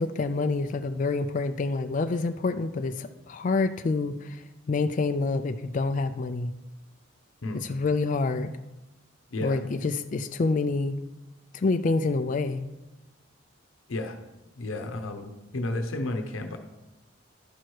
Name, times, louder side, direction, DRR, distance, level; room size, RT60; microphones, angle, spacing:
voice 1, 0.0-4.4 4.7-6.5 7.6-8.5 9.4-11.0 11.5-12.6, left 3 dB, 40° left, 8 dB, 0.3 m, -27 dB
voice 2, 9.3-9.6 13.9-14.2 14.6-16.6, left 2 dB, 85° left, 6 dB, 0.8 m, -32 dB
11.5 x 4.7 x 4.5 m, 1.0 s
head